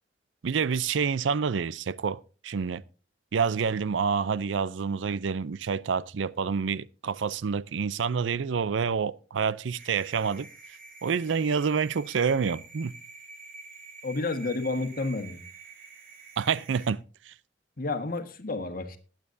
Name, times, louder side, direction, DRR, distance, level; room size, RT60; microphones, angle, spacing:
voice 1, 0.4-2.8 3.3-10.5 11.0-12.9 16.4-17.3, right 6 dB, 80° right, 0.5 m, -28 dB
sound 1, 9.8-16.9, right 4 dB, 50° right, 2.8 m, -48 dB
voice 2, 14.0-15.4 17.8-19.0, left 3 dB, 50° left, 1.5 m, -30 dB
20.5 x 9.2 x 2.6 m
head